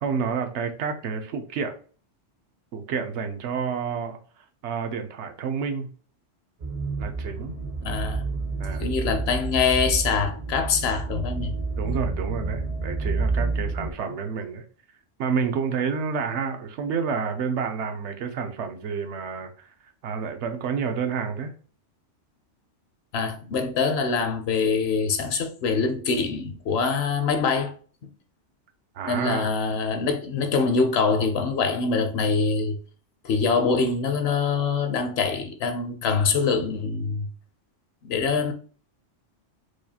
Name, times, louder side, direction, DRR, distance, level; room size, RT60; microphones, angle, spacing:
voice 1, 0.0-1.7 2.7-4.2 4.6-5.9 7.0-7.5 8.6-8.8 11.8-14.6 15.2-19.7 20.0-21.5 28.9-29.5, right 6 dB, 75° right, 0.9 m, -29 dB
sound 1, 6.6-13.9, right 3 dB, 50° right, 0.6 m, -29 dB
voice 2, 7.8-8.2 8.8-11.6 23.1-27.7 29.1-32.8 33.2-37.3 38.0-38.5, left 5 dB, 65° left, 0.8 m, -24 dB
4.7 x 2.3 x 2.7 m
omnidirectional pair, 1.2 m